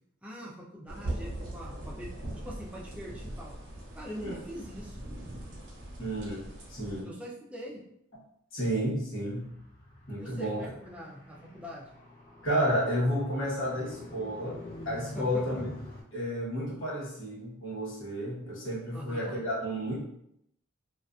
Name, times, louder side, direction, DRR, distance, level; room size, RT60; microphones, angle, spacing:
voice 1, 0.2-2.1 2.4-3.5 3.9-5.0 7.0-7.8 10.2-11.9 15.1-15.6 18.9-19.3, equal, 5° right, -4 dB, 0.4 m, -43 dB
sound 1, 0.9-7.0, right 1 dB, 60° right, 0.6 m, -40 dB
voice 2, 6.0-7.1 8.5-9.5 10.1-10.7 12.4-14.6 14.8-15.7 16.1-20.0, equal, 65° left, -7 dB, 1.1 m, -31 dB
Car, 9.1-16.0, left 2 dB, 45° left, 0.8 m, -47 dB
2.6 x 2.4 x 2.3 m, 0.77 s
head